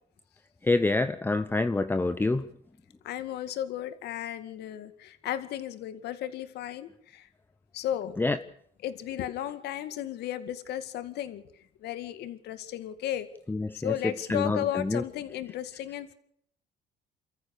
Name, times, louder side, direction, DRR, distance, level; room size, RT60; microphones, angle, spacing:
voice 1, 0.7-2.4 8.2-8.4 13.5-13.9 14.3-14.6 14.8-15.0, left 2 dB, 10° left, 10 dB, 0.9 m, -26 dB
voice 2, 3.0-7.3 7.7-8.2 8.8-11.4 11.8-13.3 13.7-16.1, left 11 dB, 75° left, 11 dB, 2.2 m, -34 dB
28.5 x 14.5 x 6.7 m, 0.69 s
cardioid pair, 110°, 17 cm